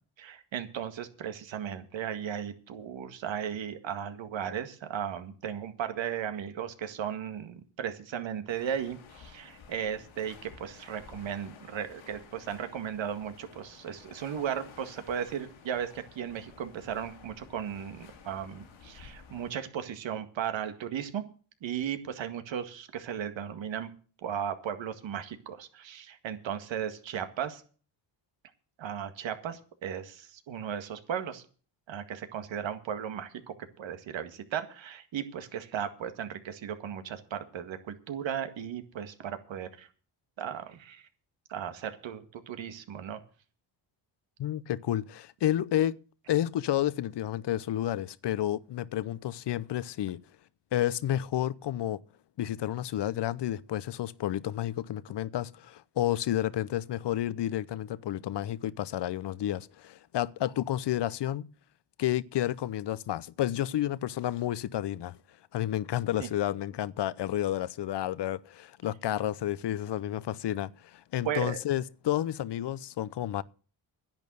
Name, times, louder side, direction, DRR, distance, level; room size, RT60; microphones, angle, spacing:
voice 1, 0.2-21.2 21.6-23.9 24.2-27.6 28.8-31.4 31.9-39.9 40.4-41.1 41.5-43.2 66.2-66.3 71.2-71.6, right 9 dB, 75° right, 2.0 m, -36 dB
sound 1, 8.5-19.5, left 6 dB, 85° left, 2.9 m, -53 dB
voice 2, 44.4-46.0 46.3-50.2 50.7-52.0 52.4-61.5 62.0-65.2 65.5-73.4, left 12 dB, 65° left, 0.8 m, -31 dB
10.5 x 9.0 x 8.0 m
cardioid pair, 75°, 46 cm